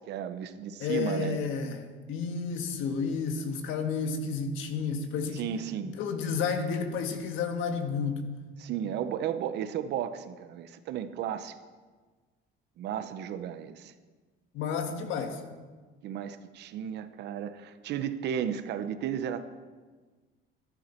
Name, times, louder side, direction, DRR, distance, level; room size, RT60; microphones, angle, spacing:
voice 1, 0.1-1.4 5.3-6.0 8.6-11.5 12.8-13.9 16.0-19.4, right 9 dB, 55° right, 11 dB, 0.8 m, -34 dB
voice 2, 0.8-5.4 6.0-8.2 14.5-15.4, left 5 dB, 70° left, 5 dB, 1.5 m, -31 dB
14.5 x 11.5 x 4.4 m, 1.4 s
cardioid pair, 180°, 21 cm